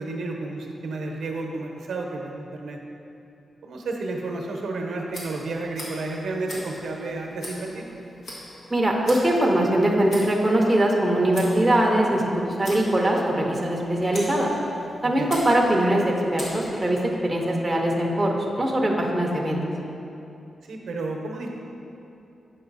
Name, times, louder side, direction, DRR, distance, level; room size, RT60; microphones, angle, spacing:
voice 1, 0.0-2.8 3.6-7.8 15.0-15.3 20.7-21.6, right 2 dB, 70° right, 1 dB, 0.7 m, -31 dB
Tick, 5.1-17.2, equal, 60° left, 1.7 m, -42 dB
voice 2, 8.7-12.2 12.6-14.5 15.0-19.6, right 1 dB, 10° right, -2 dB, 0.7 m, -22 dB
7.8 x 5.4 x 4.0 m, 2.8 s
wide cardioid pair, 170°, 0 cm